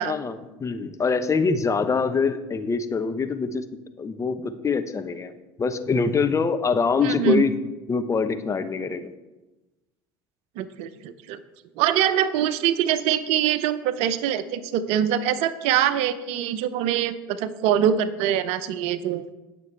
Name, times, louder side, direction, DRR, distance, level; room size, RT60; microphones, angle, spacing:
voice 1, 0.0-3.6 4.0-5.3 5.6-7.5 7.9-9.1, left 5 dB, 25° left, 9 dB, 1.0 m, -24 dB
voice 2, 7.0-7.4 10.6-11.4 11.8-19.3, right 10 dB, 60° right, 14 dB, 0.7 m, -24 dB
18.5 x 6.9 x 3.3 m, 1.1 s
hypercardioid pair, 75°, 12 cm